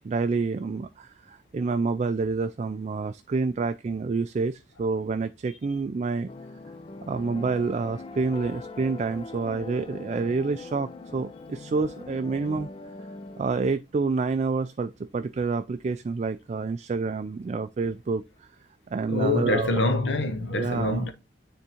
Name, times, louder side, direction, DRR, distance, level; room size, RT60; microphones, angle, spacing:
voice 1, 0.0-6.3 7.1-12.7 13.4-18.5 18.9-19.8 20.5-21.0, right 4 dB, 40° right, 0.3 m, -28 dB
sound 1, 6.3-13.5, left 3 dB, 30° left, 0.4 m, -42 dB
voice 2, 19.1-21.1, left 2 dB, 70° left, 0.9 m, -25 dB
9.6 x 3.6 x 2.9 m
head